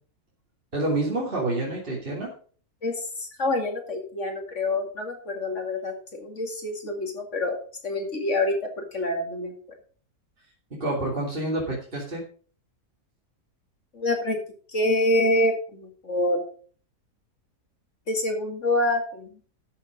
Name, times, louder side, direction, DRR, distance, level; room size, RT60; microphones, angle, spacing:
voice 1, 0.7-2.3 10.7-12.2, right 2 dB, 35° right, -4 dB, 3.2 m, -28 dB
voice 2, 2.8-7.6 7.8-9.5 13.9-14.4 14.7-16.4 18.1-19.4, left 1 dB, 50° left, 3 dB, 2.7 m, -26 dB
13.0 x 7.0 x 5.2 m, 0.42 s
omnidirectional pair, 1.7 m